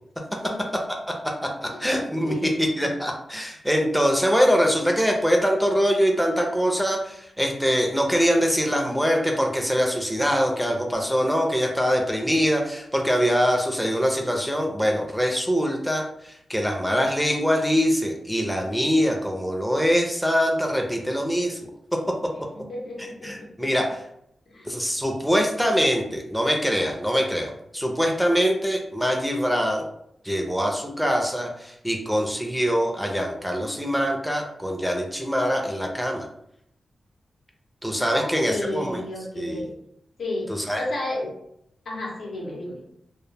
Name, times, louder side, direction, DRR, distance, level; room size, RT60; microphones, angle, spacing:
voice 1, 0.4-0.7 1.6-1.9 2.2-2.6 22.5-23.7 24.5-24.7 38.1-39.7 40.2-41.3 41.8-42.8, left 1 dB, 75° left, -3 dB, 0.7 m, -32 dB
voice 2, 1.2-21.7 23.2-24.0 24.6-29.9 30.2-36.3 37.8-39.0 39.4-39.6 40.5-40.8, equal, ahead, 1 dB, 0.4 m, -23 dB
2.1 x 2.1 x 3.2 m, 0.76 s
wide cardioid pair, 90°, 0 cm